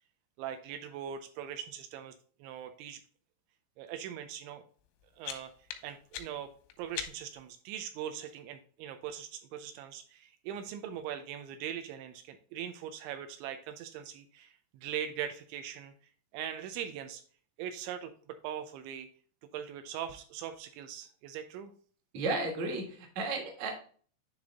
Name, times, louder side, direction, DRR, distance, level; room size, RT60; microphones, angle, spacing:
voice 1, 0.4-2.1 2.4-3.0 3.8-4.6 5.2-5.5 5.8-6.5 6.8-15.9 16.3-17.2 17.6-19.1 19.5-21.7, right 9 dB, 85° right, 8 dB, 2.9 m, -41 dB
sound 1, 4.8-7.5, left 10 dB, 90° left, 3.2 m, -44 dB
voice 2, 22.1-23.7, right 3 dB, 55° right, 1 dB, 2.1 m, -33 dB
10.5 x 3.5 x 3.5 m, 0.43 s
omnidirectional pair, 5.4 m